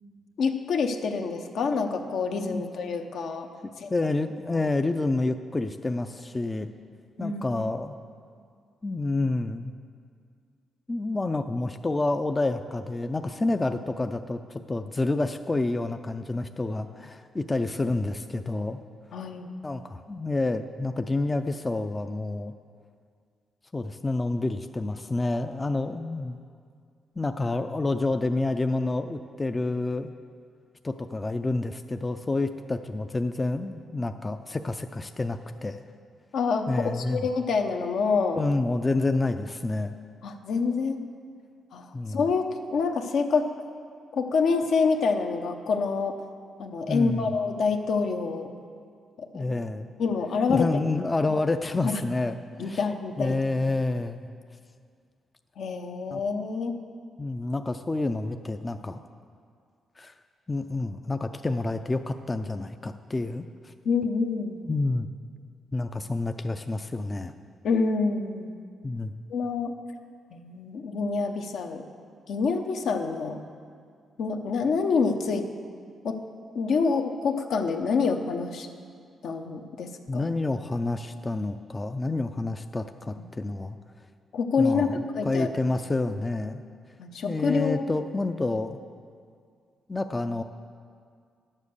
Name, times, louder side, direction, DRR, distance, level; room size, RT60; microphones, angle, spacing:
voice 1, 0.4-3.5 3.8-3.9 4.5-4.7 7.2-7.4 19.1-19.5 36.3-38.4 40.2-41.0 41.7-43.5 44.1-46.1 46.6-48.5 49.2-49.6 50.0-50.8 51.8-52.0 52.6-53.4 55.6-56.8 63.8-64.6 67.6-68.6 69.3-69.7 70.3-71.8 72.3-73.4 74.2-75.5 76.0-76.2 76.5-78.7 79.2-80.3 84.3-85.5 87.0-87.9, left 4 dB, 75° left, 5 dB, 0.8 m, -27 dB
voice 2, 3.9-6.7 7.2-8.0 8.8-9.7 10.9-18.8 19.6-22.5 23.7-26.4 27.2-30.1 30.8-35.8 36.7-37.3 38.4-40.0 41.9-42.2 46.9-47.3 49.3-49.9 50.5-52.4 52.6-52.8 53.2-54.3 56.1-56.2 57.2-59.0 60.0-60.1 60.5-63.7 64.6-65.1 65.7-67.3 68.8-69.1 80.1-83.8 84.6-85.0 85.2-86.6 87.3-88.8 89.9-90.4, left 2 dB, 25° left, 8 dB, 0.4 m, -28 dB
10.5 x 7.4 x 6.6 m, 2.2 s
cardioid pair, 90°, 0 cm